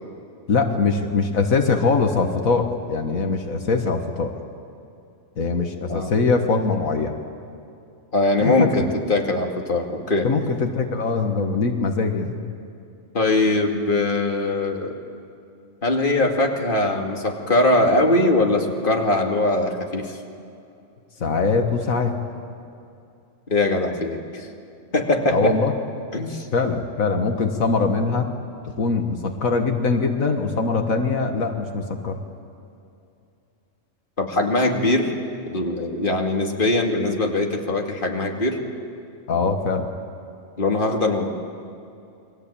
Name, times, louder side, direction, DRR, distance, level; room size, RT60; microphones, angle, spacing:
voice 1, 0.5-4.3 5.4-7.1 8.4-8.9 10.2-12.4 21.2-22.1 25.3-25.7 26.5-28.3 28.8-32.2 39.3-39.9, left 4 dB, 80° left, 4 dB, 2.0 m, -22 dB
voice 2, 8.1-10.3 13.1-15.0 15.8-20.2 23.5-24.5 24.9-25.5 26.1-26.5 34.2-35.1 35.5-38.6 40.6-41.3, left 2 dB, 40° left, 1 dB, 2.6 m, -21 dB
29.5 x 22.5 x 8.7 m, 2.6 s
omnidirectional pair, 1.4 m